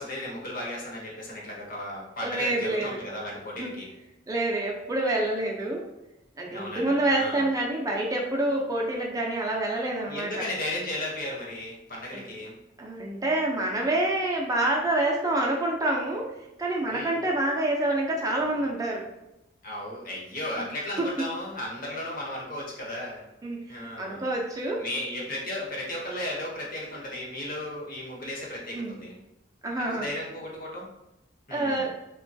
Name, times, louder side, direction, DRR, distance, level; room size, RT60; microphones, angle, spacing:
voice 1, 0.0-3.9 6.5-7.5 10.1-12.5 16.9-17.2 19.6-23.2 23.7-24.3 24.8-29.1 29.8-30.9 31.5-31.9, left 1 dB, 50° left, -3 dB, 0.8 m, -35 dB
voice 2, 2.2-3.0 3.6-3.7 4.3-5.9 6.4-10.4 12.1-12.2 12.8-16.3 16.6-19.0 20.6-20.7 21.0-21.3 23.4-24.9 28.7-29.0 29.6-30.1 31.5-31.9, right 1 dB, 20° right, -1 dB, 0.4 m, -27 dB
3.0 x 2.2 x 2.6 m, 0.91 s
head